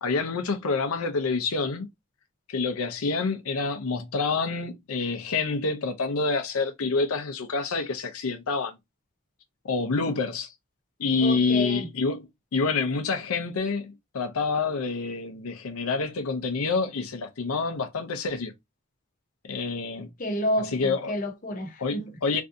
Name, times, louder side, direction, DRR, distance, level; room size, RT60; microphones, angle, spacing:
voice 1, 0.0-1.9 2.5-8.8 9.6-10.5 11.0-18.5 19.4-20.1 20.6-21.1 21.8-22.4, left 4 dB, 85° left, 0.6 m, -27 dB
voice 2, 11.2-11.9 20.2-22.1, left 1 dB, 40° left, 0.7 m, -30 dB
3.2 x 2.7 x 2.5 m
head